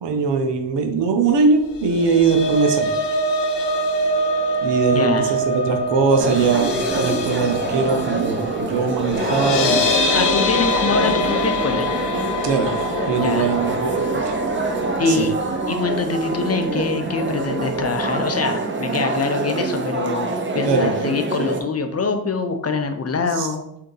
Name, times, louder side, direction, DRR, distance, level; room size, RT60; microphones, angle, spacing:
voice 1, 0.0-2.9 4.6-9.9 12.4-14.4 15.1-15.2 20.6-20.9 23.4-23.5, right 4 dB, 90° right, 4 dB, 0.7 m, -21 dB
sound 1, 1.7-16.0 16.3-16.6 16.9-17.0, left 1 dB, 90° left, 0.5 m, -24 dB
voice 2, 4.9-5.4 10.1-11.9 13.2-13.5 15.0-15.3 15.7-23.6, left 4 dB, 40° left, 7 dB, 0.5 m, -24 dB
sound 2, 6.2-21.6, right 3 dB, 30° right, 0.6 m, -25 dB
3.7 x 2.8 x 3.7 m, 0.79 s
cardioid pair, 75°, 41 cm